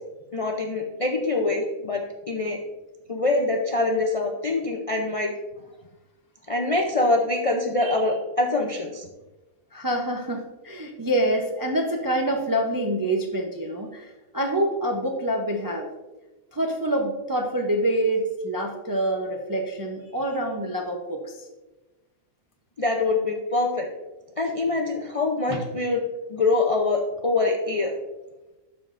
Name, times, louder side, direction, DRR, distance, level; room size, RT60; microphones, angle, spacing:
voice 1, 0.3-2.6 3.1-5.3 6.5-9.1 22.8-23.9 24.4-26.0 26.3-27.9, left 2 dB, 50° left, 1 dB, 0.4 m, -24 dB
voice 2, 9.7-15.9 16.5-21.5, right 1 dB, 30° right, 1 dB, 0.3 m, -26 dB
12.5 x 4.5 x 2.5 m, 1.1 s
omnidirectional pair, 1.4 m